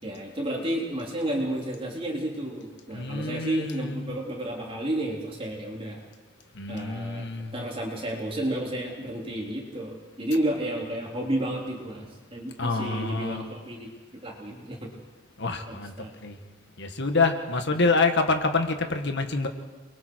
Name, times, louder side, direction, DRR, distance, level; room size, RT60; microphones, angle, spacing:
voice 1, 0.0-6.0 6.7-14.9 15.7-16.1 17.8-17.9, right 1 dB, 25° right, -1 dB, 3.5 m, -31 dB
voice 2, 2.9-4.2 6.6-7.6 12.6-13.5 15.4-16.4 16.8-19.5, left 3 dB, 55° left, 6 dB, 1.8 m, -27 dB
28.5 x 22.5 x 4.7 m, 1.3 s
head